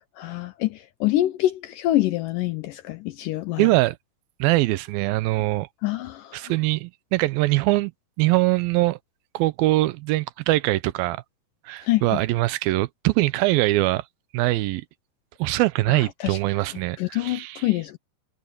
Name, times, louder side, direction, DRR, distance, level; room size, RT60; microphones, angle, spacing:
voice 1, 0.0-3.6 5.8-6.5 11.8-12.2 15.9-16.4 17.0-18.0, left 15 dB, 80° left, 2.1 m, -26 dB
voice 2, 3.6-4.0 4.4-5.7 6.3-7.9 8.2-9.0 9.3-11.2 11.7-14.0 14.3-14.8 15.4-17.7, right 19 dB, 85° right, 2.4 m, -22 dB
omnidirectional pair, 4.3 m